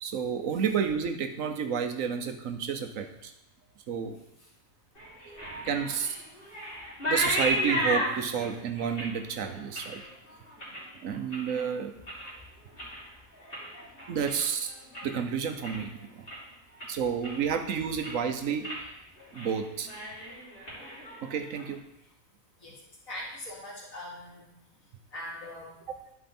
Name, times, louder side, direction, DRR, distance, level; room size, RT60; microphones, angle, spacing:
voice 1, 0.0-3.3 3.9-4.2 5.6-6.2 7.1-10.0 11.0-11.9 14.1-14.7 15.0-16.3 16.9-18.7 19.3-19.9 21.2-21.8, right 7 dB, 75° right, 7 dB, 1.2 m, -30 dB
sound 1, 5.0-11.6 12.0-12.4 12.7-15.2 15.5-15.9 16.3-16.4 16.8-17.6 17.9-18.3 18.6-18.8 19.2-19.5 19.8-21.7, equal, 40° left, 3.1 m, -34 dB
voice 2, 23.1-24.5 25.1-25.7, left 1 dB, 75° left, -4 dB, 3.0 m, -41 dB
11.5 x 5.0 x 4.3 m, 0.82 s
omnidirectional pair, 1.4 m